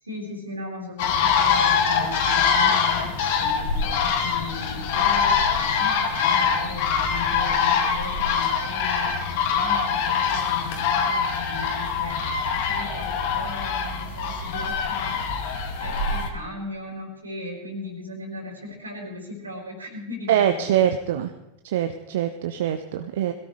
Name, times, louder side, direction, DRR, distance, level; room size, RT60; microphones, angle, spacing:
voice 1, 0.0-21.0, left 3 dB, 75° right, 1 dB, 4.4 m, -37 dB
sound 1, 1.0-16.3, left 6 dB, 50° left, 2.2 m, -23 dB
voice 2, 20.3-21.3 21.6-23.3, right 10 dB, 55° right, 7 dB, 0.9 m, -23 dB
21.5 x 17.0 x 3.3 m, 0.97 s
figure-of-eight pair, 90°, 0 cm